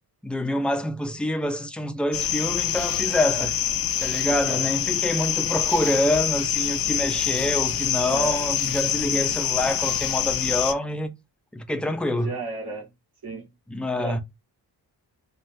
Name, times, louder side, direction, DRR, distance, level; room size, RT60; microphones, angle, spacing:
voice 1, 0.2-3.5 4.0-11.1 11.5-12.3 13.7-14.2, left 1 dB, 5° left, 0.4 m, -26 dB
sound 1, 2.1-10.7, left 10 dB, 60° left, 0.5 m, -26 dB
voice 2, 4.2-4.6 8.1-8.4 12.1-12.9 13.2-13.4 14.0-14.2, right 3 dB, 70° right, 1.6 m, -34 dB
3.3 x 2.2 x 2.6 m
wide cardioid pair, 105°, 40 cm